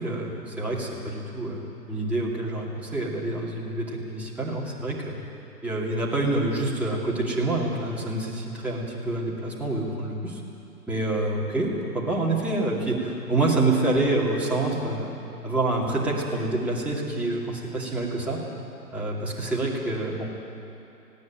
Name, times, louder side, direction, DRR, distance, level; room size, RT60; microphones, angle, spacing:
voice 1, 0.0-1.6 1.9-5.1 5.6-10.4 10.9-11.7 11.9-15.1 15.4-18.4 18.9-20.3, right 2 dB, 5° right, -6 dB, 2.6 m, -27 dB
19.5 x 16.0 x 9.2 m, 2.8 s
hypercardioid pair, 145°, 48 cm